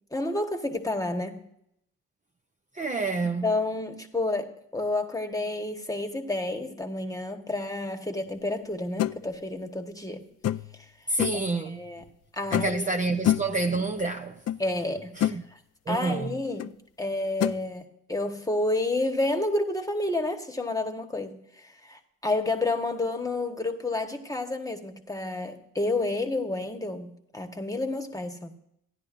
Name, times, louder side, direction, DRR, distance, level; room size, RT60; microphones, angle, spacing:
voice 1, 0.1-1.4 3.4-10.2 10.8-10.9 11.3-12.0 12.4-13.0 14.6-15.6 15.9-28.5, left 2 dB, 10° left, 1.3 m, -30 dB
voice 2, 2.7-3.5 11.1-11.9 12.5-14.4 15.2-15.4 15.9-16.3, right 3 dB, 25° right, 0.6 m, -28 dB
sound 1, 9.0-9.2 10.4-10.8 11.2-11.5 12.5-12.9 13.2-13.6 14.5-14.6 15.0-15.4 16.6-16.7 17.4-17.6, left 12 dB, 50° left, 0.4 m, -26 dB
14.0 x 10.5 x 2.6 m
cardioid pair, 80°, 33 cm